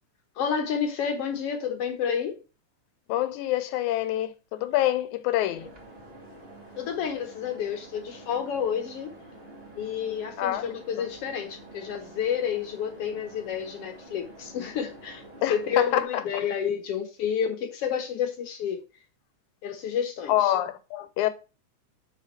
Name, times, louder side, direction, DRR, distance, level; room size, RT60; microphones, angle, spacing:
voice 1, 0.4-2.4 6.8-9.1 9.8-15.2 15.5-18.8 19.6-20.5, left 7 dB, 65° left, 1.6 m, -30 dB
voice 2, 3.1-5.7 10.4-10.7 11.0-11.1 15.4-16.2 20.3-21.3, left 13 dB, 85° left, 2.1 m, -26 dB
sound 1, 5.5-16.0, right 1 dB, 30° right, 1.1 m, -48 dB
5.7 x 5.1 x 4.2 m
omnidirectional pair, 3.4 m